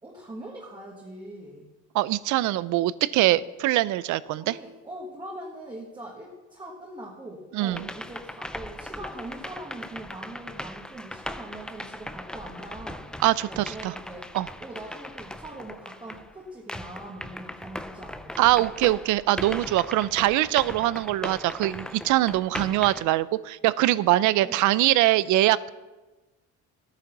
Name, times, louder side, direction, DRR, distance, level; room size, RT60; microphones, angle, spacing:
voice 1, 0.0-1.7 4.3-13.0 13.4-14.3 14.6-18.9 24.4-24.6, right 1 dB, 15° right, -3 dB, 1.6 m, -42 dB
voice 2, 1.9-4.6 7.5-7.9 13.2-13.9 14.3-14.5 18.4-25.7, right 16 dB, 75° right, 19 dB, 0.5 m, -23 dB
sound 1, 7.7-16.3 16.7-23.0, left 1 dB, 5° left, 0.4 m, -39 dB
14.0 x 9.3 x 5.9 m, 1.2 s
cardioid pair, 155°, 30 cm